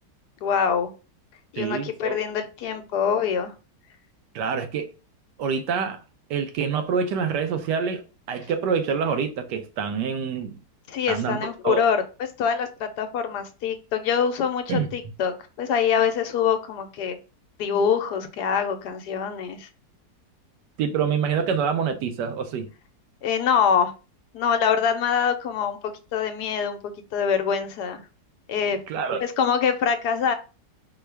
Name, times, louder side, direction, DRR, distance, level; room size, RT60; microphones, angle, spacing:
voice 1, 0.4-0.9 1.5-3.5 10.9-12.0 12.4-17.2 17.6-19.7 23.2-23.9 24.3-28.0 28.5-28.8 29.2-30.3, left 7 dB, 75° left, 1.1 m, -24 dB
voice 2, 1.6-2.2 4.3-4.9 5.4-6.0 6.3-8.0 8.3-10.6 11.1-11.9 14.7-14.9 20.8-22.7 28.9-29.2, right 6 dB, 80° right, 1.2 m, -26 dB
4.4 x 2.3 x 3.3 m
omnidirectional pair, 1.9 m